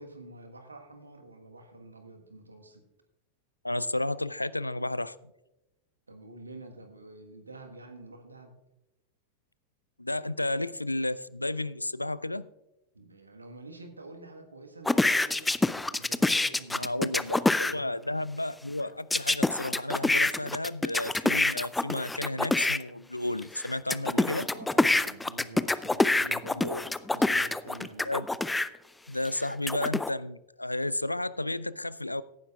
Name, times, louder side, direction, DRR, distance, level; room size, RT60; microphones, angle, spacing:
voice 1, 0.0-2.8 6.1-8.6 12.9-17.9 24.5-28.1, right 2 dB, 80° right, 5 dB, 1.4 m, -48 dB
voice 2, 3.6-5.2 10.0-12.5 16.7-24.5 26.6-26.8 28.1-28.2 29.1-32.2, left 2 dB, 85° left, 18 dB, 0.3 m, -32 dB
sound 1, 14.9-17.7 19.1-22.8 23.4-28.7 29.2-30.1, left 2 dB, 5° left, 0.4 m, -26 dB
17.5 x 9.9 x 2.4 m, 0.93 s
figure-of-eight pair, 90°, 0 cm